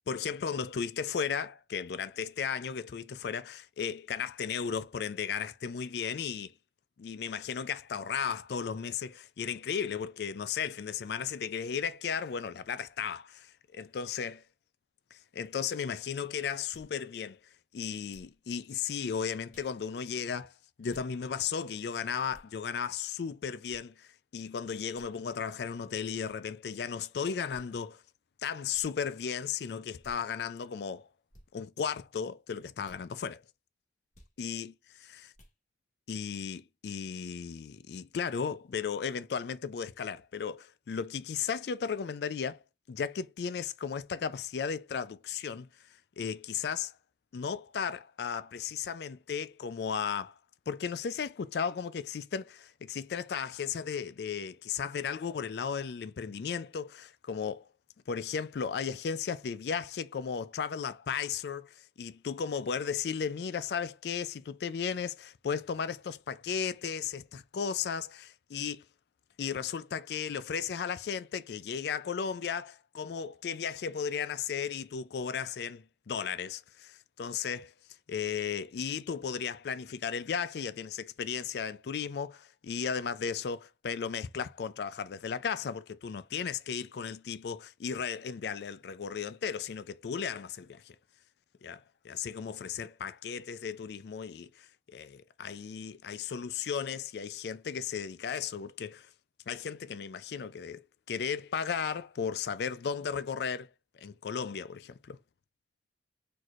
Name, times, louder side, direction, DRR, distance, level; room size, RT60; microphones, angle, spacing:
voice 1, 0.1-6.5 7.0-14.4 15.3-17.4 17.7-20.5 20.8-28.0 28.4-31.1 31.5-33.4 34.4-34.7 36.1-42.6 42.9-45.7 46.2-46.9 47.3-50.3 50.7-57.6 58.1-68.8 69.4-77.7 78.1-91.0 91.6-99.1 99.5-103.7 104.0-105.2, left 6 dB, 70° left, 0.4 m, -35 dB
sound 1, 16.7-17.0 18.1-18.4 19.5-19.7 20.9-21.1 22.3-22.5 23.7-23.8 24.9-25.1 26.2-26.4 27.5-27.8 28.7-28.9 30.0-30.2 31.3-31.5 32.8-33.0 34.1-34.4 35.3-35.6, equal, 45° left, 1.7 m, -57 dB
4.7 x 4.1 x 2.4 m
head